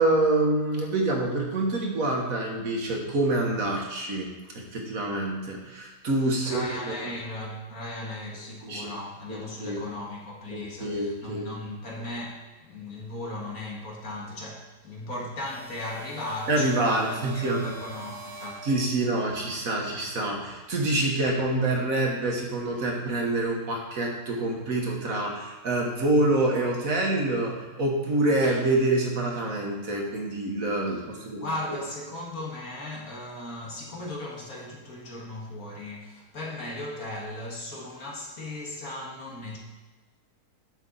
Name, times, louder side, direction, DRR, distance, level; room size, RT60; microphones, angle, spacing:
voice 1, 0.0-4.3 4.5-6.9 8.6-8.9 9.3-9.8 10.5-11.5 16.5-17.7 18.6-31.5, right 2 dB, 55° right, 0 dB, 1.8 m, -26 dB
voice 2, 6.4-18.7 30.9-39.6, left 1 dB, 60° left, -3 dB, 2.2 m, -37 dB
sound 1, 15.4-19.3, right 1 dB, 40° right, 1.4 m, -44 dB
10.0 x 7.0 x 4.0 m, 1.2 s
omnidirectional pair, 1.7 m